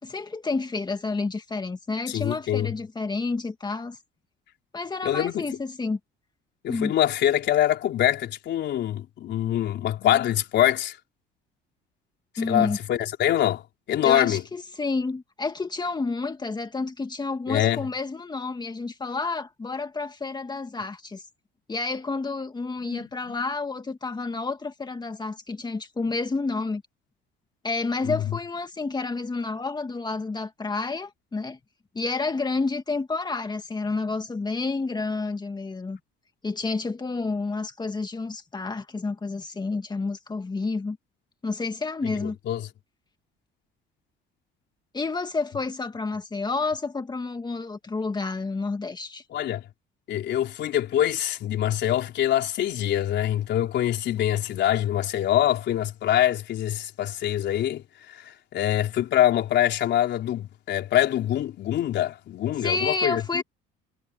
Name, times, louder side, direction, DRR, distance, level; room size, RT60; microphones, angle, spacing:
voice 1, 0.0-4.0 4.7-6.0 6.7-6.9 12.4-12.8 14.0-21.2 21.7-26.8 27.6-31.6 31.9-36.0 36.4-41.0 41.4-42.4 44.9-49.2 62.6-63.4, left 3 dB, 20° left, 2.1 m, -30 dB
voice 2, 2.1-2.7 5.0-5.4 6.6-11.0 12.4-13.6 13.9-14.4 17.5-17.8 22.8-23.4 28.0-28.4 42.2-42.7 49.3-49.6 50.1-63.4, left 12 dB, 60° left, 4.1 m, -24 dB
cardioid pair, 95°, 20 cm